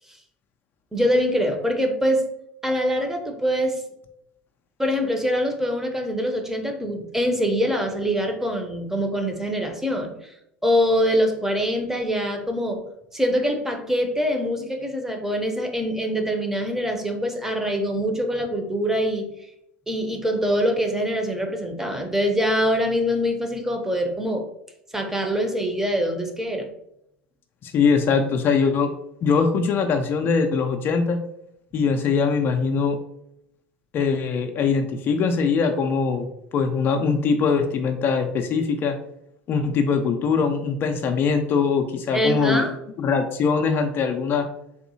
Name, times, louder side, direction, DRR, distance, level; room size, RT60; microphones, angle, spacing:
voice 1, 0.9-2.2 2.6-3.8 4.8-10.3 10.6-12.8 13.1-19.3 19.9-24.5 24.9-26.7 42.1-42.8, equal, 10° right, 4 dB, 0.7 m, -24 dB
voice 2, 27.6-28.9 29.2-31.2 31.7-33.0 33.9-36.3 36.5-38.9 39.5-42.7 43.0-44.5, left 5 dB, 45° left, 5 dB, 0.4 m, -22 dB
3.6 x 2.6 x 2.7 m, 0.78 s
hypercardioid pair, 80°, 5 cm